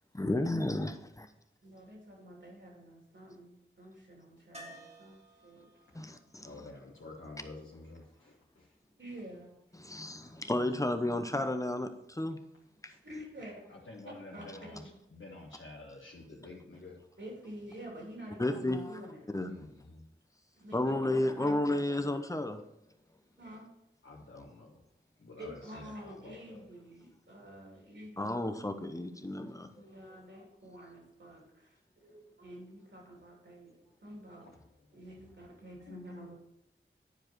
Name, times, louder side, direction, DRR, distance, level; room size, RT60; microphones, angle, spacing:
voice 1, 0.1-1.3 5.9-6.5 9.8-12.4 12.8-12.9 18.4-18.9 19.3-19.5 20.7-22.6 28.2-29.7, left 1 dB, 15° left, 7 dB, 0.8 m, -32 dB
voice 2, 1.6-5.7 9.0-9.5 13.0-13.6 14.0-14.9 17.2-19.2 20.5-21.8 22.0-22.3 23.4-23.7 25.4-28.5 29.8-33.7 34.0-34.5 34.9-36.3, equal, 65° right, -3 dB, 3.3 m, -48 dB
sound 1, 4.5-8.4 11.1-11.2 11.4-11.5, right 1 dB, 30° right, 1.9 m, -55 dB
voice 3, 6.4-8.7 9.9-10.5 12.8-13.0 13.7-14.8 15.1-17.0 19.5-20.0 24.0-24.8 25.2-26.6 34.5-34.6 35.8-36.3, left 2 dB, 70° left, -4 dB, 1.3 m, -50 dB
10.0 x 4.8 x 4.6 m, 0.83 s
wide cardioid pair, 55°, 21 cm